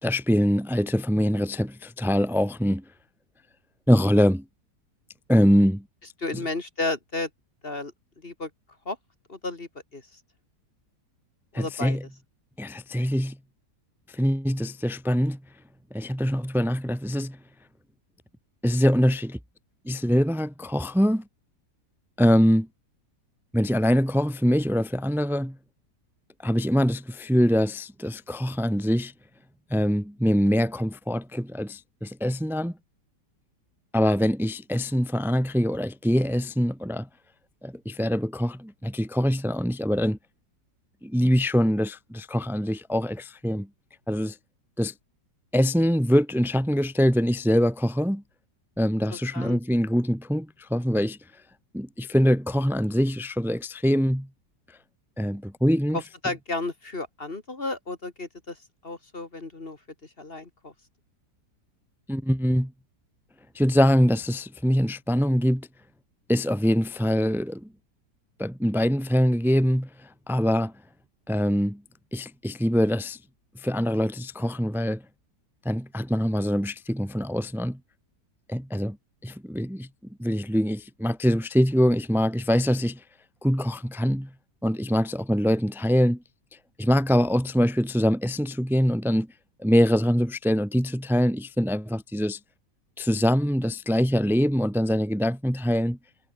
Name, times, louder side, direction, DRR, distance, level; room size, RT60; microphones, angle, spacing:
voice 1, 0.0-2.8 3.9-4.4 5.3-5.8 11.5-12.0 12.6-13.4 14.1-15.4 15.9-17.4 18.6-19.4 19.8-21.2 22.2-22.7 23.5-25.6 26.4-29.1 29.7-32.8 33.9-37.1 37.6-40.2 41.0-43.7 44.1-44.4 44.8-44.9 45.5-48.2 48.8-51.2 51.7-54.3 55.2-56.0 62.1-62.7 63.5-65.7 66.3-67.7 68.4-70.7 71.3-71.8 72.1-73.2 73.5-75.0 75.6-77.8 78.5-79.0 79.2-79.9 80.2-83.0 83.4-84.3 84.6-86.2 86.8-89.3 89.6-92.4 93.0-96.0, equal, ahead, 1.5 m, -23 dB
voice 2, 6.2-7.3 7.6-7.9 8.2-8.5 8.9-9.0 9.3-10.0 11.5-12.0 49.1-49.6 56.2-58.6 58.8-59.8 60.2-60.7, left 2 dB, 35° left, 2.2 m, -33 dB
omnidirectional pair, 1.8 m